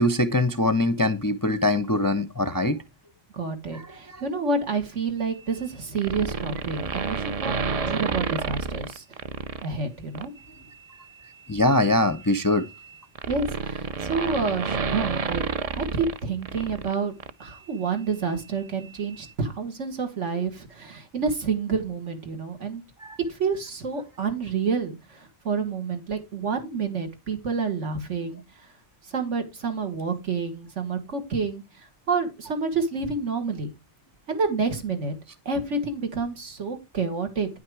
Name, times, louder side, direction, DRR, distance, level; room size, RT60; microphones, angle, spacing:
voice 1, 0.0-2.8 3.7-3.8 4.1-4.2 11.5-12.7 23.0-23.2, left 1 dB, 25° left, 0.4 m, -22 dB
voice 2, 3.3-9.0 9.6-10.3 13.3-15.4 15.8-22.8 23.3-28.4 29.1-31.6 32.1-33.7 34.3-35.1 35.5-37.5, right 4 dB, 75° right, 2.0 m, -29 dB
sound 1, 6.0-9.7 10.1-10.4 11.6-16.9 17.2-17.3, right 5 dB, 45° right, 0.5 m, -30 dB
9.5 x 5.9 x 4.7 m
omnidirectional pair, 1.2 m